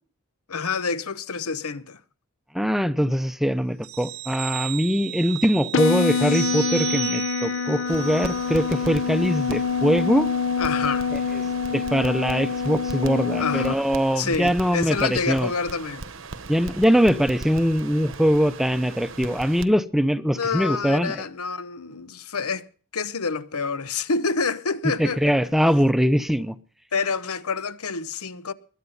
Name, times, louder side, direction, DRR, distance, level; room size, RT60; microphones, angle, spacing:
voice 1, 0.5-2.0 10.6-11.1 13.4-13.9 14.2-16.1 20.3-22.6 22.9-25.5 26.9-28.5, left 4 dB, 90° left, 1.0 m, -28 dB
voice 2, 2.5-10.3 11.7-15.5 16.5-21.1 25.0-26.5, equal, ahead, 0.7 m, -22 dB
sound 1, 3.8-8.9 9.3-9.4, right 16 dB, 85° right, 0.6 m, -34 dB
sound 2, 5.7-13.7, left 5 dB, 60° left, 0.7 m, -26 dB
Crackle, 7.9-19.7, right 4 dB, 65° right, 1.0 m, -39 dB
21.5 x 9.4 x 5.5 m
head